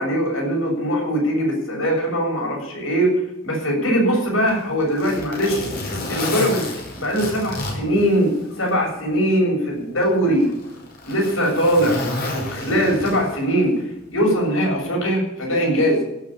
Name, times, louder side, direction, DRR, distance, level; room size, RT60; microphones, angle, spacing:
voice 1, 0.0-3.1 3.4-5.7 6.1-6.7 6.9-10.5 11.0-12.0 12.3-13.7 14.1-16.0, equal, 90° left, -1 dB, 7.1 m, -21 dB
Zipper (clothing), 4.3-8.7 9.1-9.2 10.0-13.5 14.6-14.8, left 2 dB, 50° left, 5.1 m, -30 dB
16.5 x 7.6 x 8.5 m, 0.87 s
head